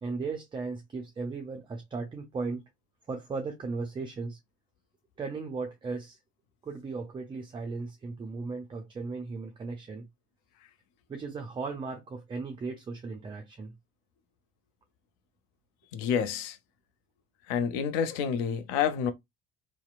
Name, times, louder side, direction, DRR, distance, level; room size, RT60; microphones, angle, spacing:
voice 1, 0.0-2.6 3.1-4.4 5.2-6.2 6.6-10.0 11.1-13.7, right 4 dB, 15° right, 0.4 m, -36 dB
voice 2, 15.9-16.6 17.5-19.1, left 7 dB, 65° left, 0.5 m, -28 dB
2.7 x 2.0 x 2.4 m
figure-of-eight pair, 60°, 36 cm